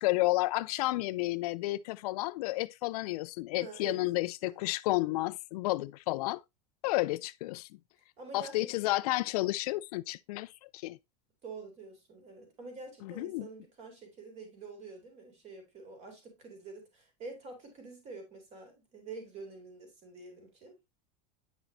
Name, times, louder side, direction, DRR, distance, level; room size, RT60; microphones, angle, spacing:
voice 1, 0.0-6.4 6.8-7.7 8.3-10.5 10.7-11.0 13.0-13.5, left 19 dB, 75° left, 0.5 m, -31 dB
voice 2, 3.5-4.0 4.4-4.7 8.2-8.7 11.4-20.8, right 4 dB, 35° right, 3.9 m, -47 dB
9.1 x 5.9 x 2.7 m
supercardioid pair, 150°, 20 cm